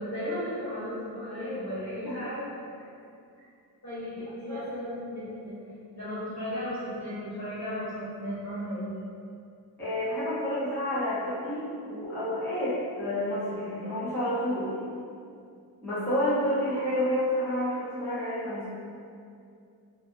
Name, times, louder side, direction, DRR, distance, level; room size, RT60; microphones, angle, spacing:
voice 1, 0.0-2.4 3.8-5.6 5.9-8.9, equal, 45° left, -11 dB, 1.2 m, -35 dB
voice 2, 9.8-14.7 15.8-18.7, left 1 dB, 5° left, -13 dB, 0.7 m, -29 dB
2.4 x 2.3 x 2.4 m, 2.5 s
wide cardioid pair, 115°, 38 cm